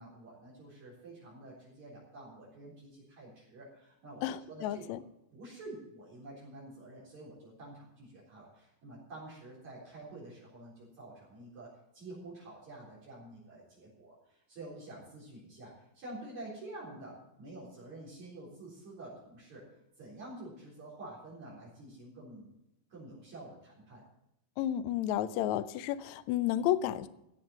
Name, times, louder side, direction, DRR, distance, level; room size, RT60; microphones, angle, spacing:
voice 1, 0.0-5.0 5.3-19.7 20.0-22.5 22.9-24.0, right 2 dB, 55° right, -6 dB, 5.3 m, -49 dB
voice 2, 4.2-5.0 24.6-27.1, left 12 dB, 85° left, 13 dB, 1.6 m, -32 dB
15.5 x 7.3 x 7.4 m, 0.86 s
omnidirectional pair, 4.0 m